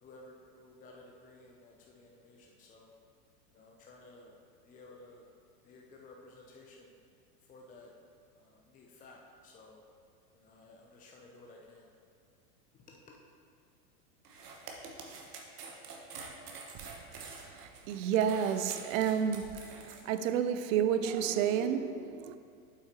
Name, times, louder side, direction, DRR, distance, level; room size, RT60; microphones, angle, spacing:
voice 1, 0.0-2.9 3.5-4.3 4.6-5.3 5.6-6.9 7.5-7.9 8.4-9.8 10.3-11.9, left 2 dB, 15° left, 0.6 m, -55 dB
sound 1, 14.2-20.0, right 4 dB, 75° right, 1.3 m, -47 dB
voice 2, 17.6-19.5 20.0-22.4, right 8 dB, 55° right, 0.6 m, -30 dB
7.9 x 5.7 x 4.3 m
hypercardioid pair, 100°, 47 cm